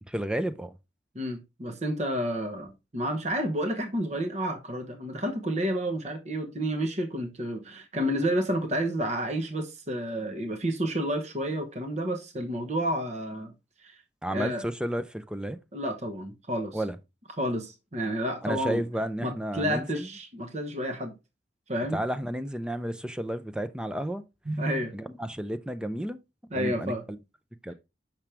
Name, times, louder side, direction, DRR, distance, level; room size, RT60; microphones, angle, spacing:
voice 1, 0.1-0.8 14.2-15.6 16.7-17.0 18.4-20.1 21.9-24.2 24.9-26.2 26.5-27.2 27.6-27.7, right 1 dB, 5° right, 0.5 m, -32 dB
voice 2, 1.1-13.5 13.8-14.0 14.3-14.6 15.7-16.8 17.4-18.8 19.2-21.1 21.7-22.0 24.5-24.9 26.5-27.0, equal, 40° right, 1.0 m, -30 dB
7.3 x 6.0 x 3.3 m
head